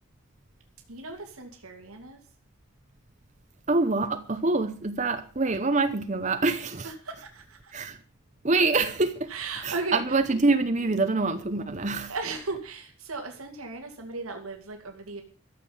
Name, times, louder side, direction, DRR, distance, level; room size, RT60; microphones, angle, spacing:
voice 1, 0.9-2.2 6.8-7.7 9.3-10.2 12.1-15.2, right 3 dB, 90° right, 2.5 m, -36 dB
voice 2, 3.7-6.9 7.7-8.0 8.4-9.3 9.6-12.1, right 3 dB, 35° right, 0.8 m, -25 dB
14.0 x 7.6 x 8.6 m
head